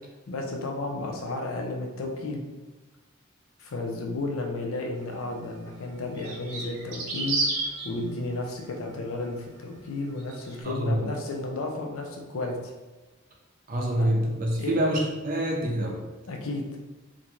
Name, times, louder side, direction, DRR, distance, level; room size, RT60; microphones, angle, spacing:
voice 1, 0.3-2.4 3.6-12.7 14.0-14.1 14.6-14.7 16.3-16.6, left 2 dB, 75° left, 2 dB, 0.5 m, -33 dB
sound 1, 5.2-5.3 6.2-7.9 10.2-10.5, right 3 dB, 80° right, 0.6 m, -30 dB
voice 2, 10.6-11.1 13.7-16.0, right 1 dB, 40° right, 0 dB, 0.5 m, -26 dB
2.5 x 2.2 x 3.0 m, 1.2 s
head